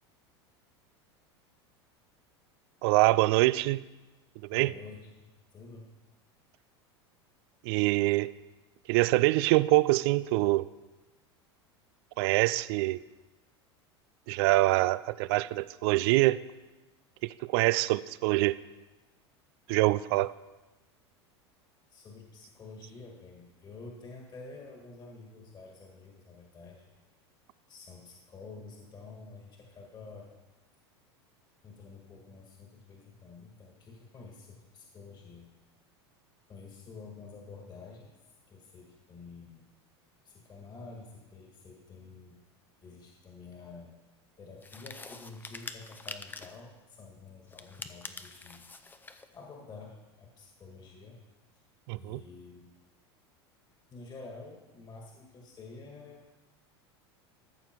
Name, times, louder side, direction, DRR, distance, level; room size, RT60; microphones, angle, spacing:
voice 1, 2.8-3.8 4.4-4.7 7.6-8.3 8.9-10.7 12.2-13.0 14.3-16.4 17.2-18.6 19.7-20.3 51.9-52.2, right 19 dB, 65° right, 19 dB, 0.4 m, -25 dB
voice 2, 4.5-5.9 21.9-26.9 27.7-30.3 31.6-35.5 36.5-38.1 38.5-39.7 40.2-42.4 42.8-43.9 44.4-48.6 49.1-51.2 51.5-51.6 52.0-52.7 53.9-56.2, left 4 dB, 30° left, 0 dB, 1.9 m, -49 dB
sound 1, 44.6-46.6 47.5-49.3, left 3 dB, 15° left, 0.7 m, -45 dB
14.0 x 6.7 x 4.6 m, 1.1 s
hypercardioid pair, 95°, 14 cm